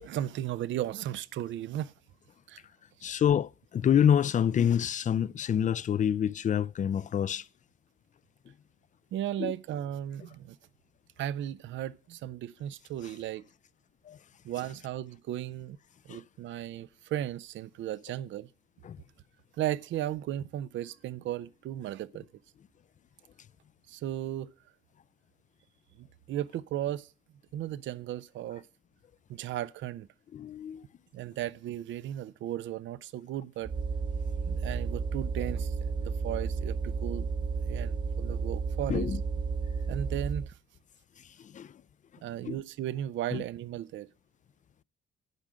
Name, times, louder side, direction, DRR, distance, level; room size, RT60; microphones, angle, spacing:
voice 1, 0.0-1.9 2.5-2.6 3.1-3.2 9.1-10.6 11.2-13.4 14.4-15.8 16.1-18.5 19.6-22.2 23.9-24.5 26.0-27.1 27.5-28.7 29.3-30.1 31.1-33.7 34.4-37.3 37.7-39.1 39.9-40.5 42.2-44.1, right 12 dB, 75° right, 0.5 m, -35 dB
voice 2, 3.0-7.4 9.4-9.5 14.1-14.2 16.1-16.2 18.8-19.0 30.3-30.8 38.9-39.2 41.4-41.7 42.4-42.6 43.3-43.4, left 9 dB, 40° left, 0.4 m, -27 dB
sound 1, 33.6-40.5, right 5 dB, 25° right, 0.5 m, -32 dB
10.5 x 5.0 x 7.7 m
cardioid pair, 90°, 20 cm